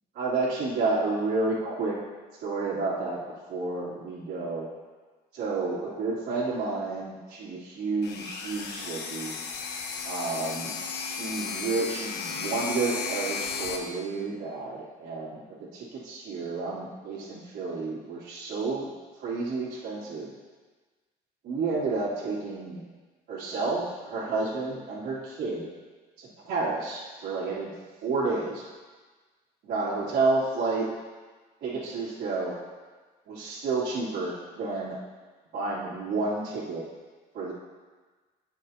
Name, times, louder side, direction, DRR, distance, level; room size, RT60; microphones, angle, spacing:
voice 1, 0.1-2.0 2.4-3.2 3.5-4.7 5.3-9.3 10.0-18.9 19.2-20.3 21.4-22.8 23.3-25.7 26.2-27.7 28.0-28.6 29.6-30.9 31.6-32.5 33.3-35.0 35.5-36.8 37.3-37.5, right 3 dB, 75° right, -11 dB, 2.9 m, -30 dB
sound 1, 8.0-13.8, left 5 dB, 80° left, 1.2 m, -34 dB
18.5 x 6.5 x 2.9 m, 1.3 s
cardioid pair, 110°, 17 cm